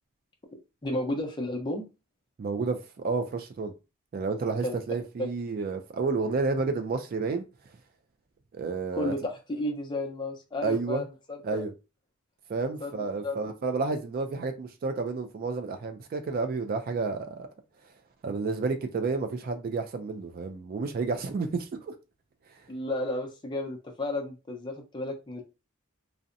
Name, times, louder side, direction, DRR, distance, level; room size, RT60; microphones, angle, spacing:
voice 1, 0.8-1.8 4.6-4.8 8.9-11.6 12.8-12.9 13.2-13.4 22.7-25.4, left 1 dB, 20° left, 0.5 m, -32 dB
voice 2, 2.4-3.7 4.1-7.4 8.5-9.1 10.6-11.0 11.4-11.7 12.5-17.5 18.2-21.9, right 4 dB, 45° right, 0.3 m, -30 dB
2.6 x 2.1 x 2.5 m
head